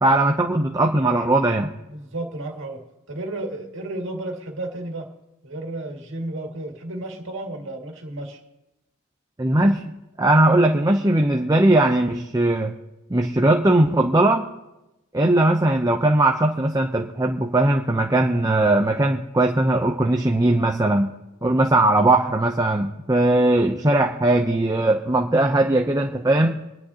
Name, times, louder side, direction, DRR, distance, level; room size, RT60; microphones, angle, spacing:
voice 1, 0.0-1.7 9.4-9.8 10.2-12.7 13.1-14.4 15.1-21.1 21.4-26.6, right 1 dB, 15° right, 3 dB, 0.6 m, -19 dB
voice 2, 1.9-2.8 3.1-5.1 5.4-8.4, right 2 dB, 60° right, 1 dB, 2.2 m, -32 dB
25.0 x 10.5 x 2.8 m, 0.95 s
head